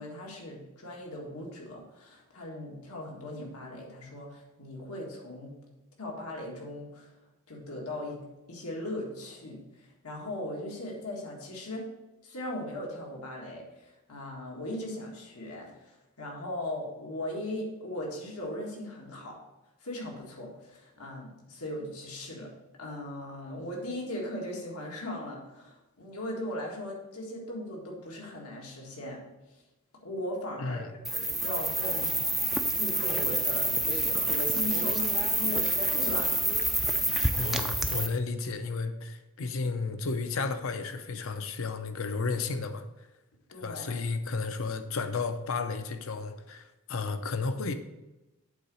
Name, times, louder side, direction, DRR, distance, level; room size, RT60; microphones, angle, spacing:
voice 1, 0.0-5.5 6.0-7.1 7.5-11.9 12.2-19.4 19.8-22.5 22.8-29.2 30.0-30.8 31.1-32.2 32.7-36.6 38.0-38.2 43.5-44.0, left 1 dB, 90° left, -1 dB, 1.8 m, -38 dB
voice 2, 30.6-30.9 37.3-42.8 43.6-47.7, left 4 dB, 70° left, 9 dB, 0.6 m, -33 dB
sound 1, 31.0-38.1, right 1 dB, ahead, 0.3 m, -28 dB
8.3 x 4.0 x 6.3 m, 1.0 s
head